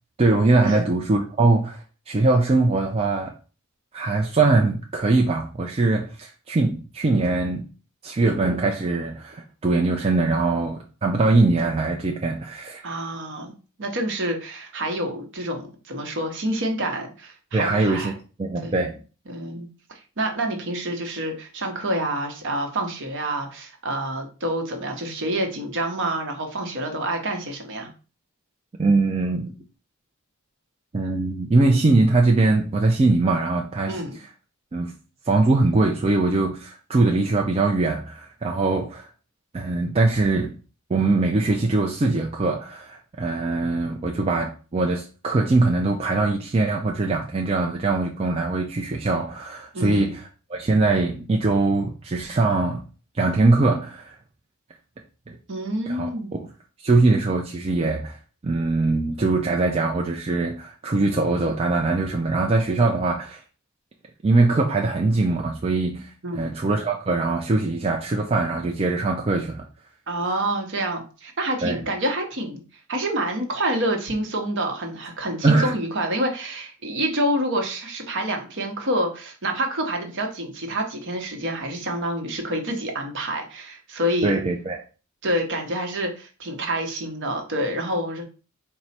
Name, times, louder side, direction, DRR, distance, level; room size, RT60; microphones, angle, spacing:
voice 1, 0.2-3.3 3.9-7.6 8.0-12.8 17.5-18.1 18.4-18.9 28.8-29.5 30.9-33.9 34.7-34.9 35.3-39.1 39.5-40.6 40.9-52.8 53.1-54.2 55.3-55.4 55.9-56.1 56.4-56.5 56.8-58.2 58.4-63.4 64.2-69.6 71.6-71.8 75.4-75.8 84.2-84.8, right 3 dB, 25° right, 0.4 m, -22 dB
voice 2, 12.8-13.5 13.8-18.1 18.6-18.8 19.3-19.7 20.2-27.9 33.9-34.2 49.7-50.2 55.5-56.3 66.2-66.5 70.1-72.6 72.9-84.4 85.2-88.2, right 1 dB, 55° right, 0.9 m, -27 dB
4.6 x 2.0 x 4.1 m
head